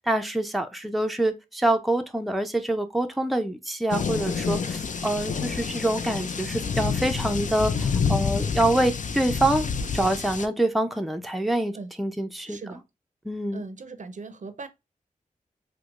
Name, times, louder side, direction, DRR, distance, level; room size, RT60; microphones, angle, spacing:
voice 1, 0.1-9.7 9.9-11.7 12.0-12.6 13.2-13.6, right 1 dB, ahead, 0.5 m, -26 dB
sound 1, 3.9-10.5, left 5 dB, 60° left, 0.4 m, -28 dB
voice 2, 12.4-12.8 13.5-14.7, right 3 dB, 60° right, 0.5 m, -39 dB
4.5 x 2.1 x 2.4 m
wide cardioid pair, 65°, 15 cm